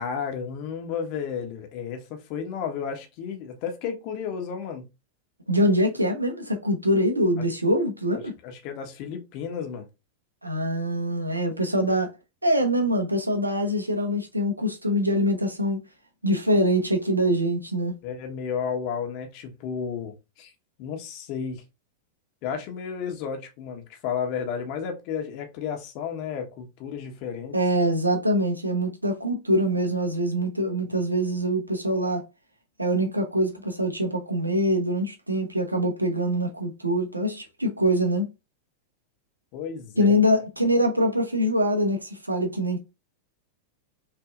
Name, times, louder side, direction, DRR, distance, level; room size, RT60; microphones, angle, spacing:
voice 1, 0.0-4.9 8.1-9.9 18.0-20.5 20.8-21.6 22.4-27.5 39.5-40.1, left 7 dB, 45° left, 1.4 m, -32 dB
voice 2, 5.5-8.3 10.4-12.1 12.4-15.8 16.2-17.9 27.5-32.2 32.8-38.3 40.0-42.8, equal, 85° right, 1.1 m, -24 dB
6.0 x 3.4 x 2.6 m
figure-of-eight pair, 90°, 0 cm